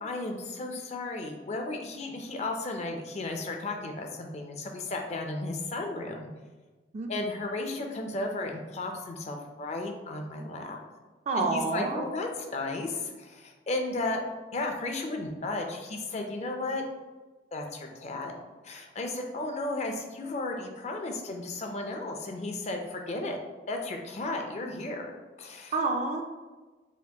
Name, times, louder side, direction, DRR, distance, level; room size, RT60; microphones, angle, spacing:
voice 1, 0.0-6.3 7.1-10.8 11.4-14.2 14.5-16.8 17.5-18.3 18.6-23.4 23.7-25.1 25.4-25.7, left 2 dB, 40° left, 3 dB, 0.4 m, -34 dB
voice 2, 11.3-12.1 25.7-26.2, right 3 dB, 40° right, 3 dB, 0.3 m, -28 dB
4.2 x 2.8 x 2.3 m, 1.2 s
head